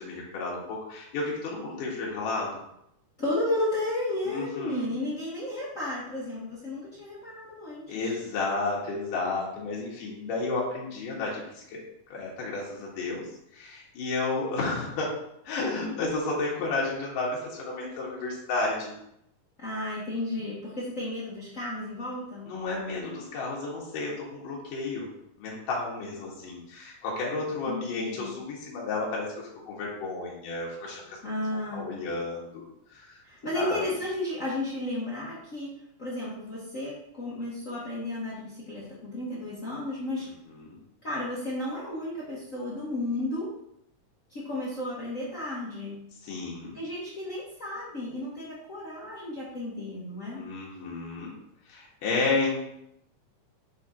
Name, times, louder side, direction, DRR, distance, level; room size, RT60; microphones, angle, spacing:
voice 1, 0.0-2.6 4.3-4.9 7.9-11.8 12.1-13.3 13.5-15.1 15.4-18.9 22.5-25.1 25.4-29.3 29.7-31.2 31.5-32.6 32.9-33.2 33.5-33.8 40.2-40.8 46.2-46.8 50.3-51.3 51.7-52.6, left 3 dB, 90° left, -4 dB, 3.0 m, -32 dB
voice 2, 3.2-8.1 19.6-22.5 27.7-28.3 31.2-31.9 33.2-35.7 36.0-40.3 41.0-43.5 44.3-46.0 46.7-50.4, left 1 dB, 65° left, -7 dB, 0.7 m, -33 dB
7.5 x 3.7 x 4.4 m, 0.77 s
omnidirectional pair, 3.7 m